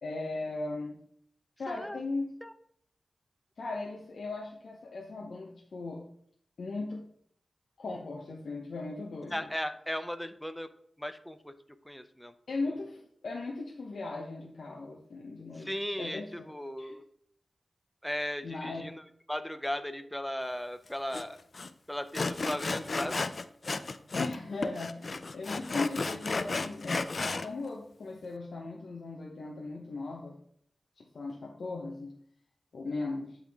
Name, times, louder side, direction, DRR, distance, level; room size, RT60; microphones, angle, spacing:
voice 1, 0.0-1.0 1.6-2.3 3.6-6.1 6.6-7.1 7.8-9.5 12.5-15.7 16.0-16.5 16.8-17.0 18.4-18.9 24.1-27.0 27.4-30.4 31.0-32.1 32.7-33.4, left 3 dB, 80° left, -1 dB, 0.8 m, -38 dB
voice 2, 1.7-2.0 2.4-2.5 9.3-10.7 11.0-11.5 11.8-12.3 15.5-17.0 18.0-21.4 21.9-23.2, equal, 5° left, 10 dB, 0.6 m, -37 dB
Sawing, 21.1-21.2 21.5-21.7 22.1-24.4 24.6-27.5, left 3 dB, 55° left, 0.4 m, -33 dB
9.6 x 3.6 x 3.5 m, 0.64 s
cardioid pair, 55°, 0 cm